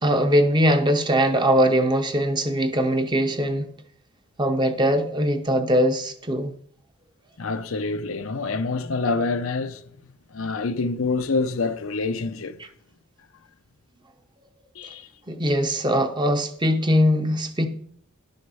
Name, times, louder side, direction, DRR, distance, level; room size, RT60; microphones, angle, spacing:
voice 1, 0.0-3.7 4.4-6.5 15.3-17.7, equal, 20° right, 0.9 m, -21 dB
voice 2, 7.4-9.8 10.3-12.6 14.7-15.1, left 3 dB, 70° left, 0.6 m, -26 dB
11.0 x 6.5 x 5.6 m
head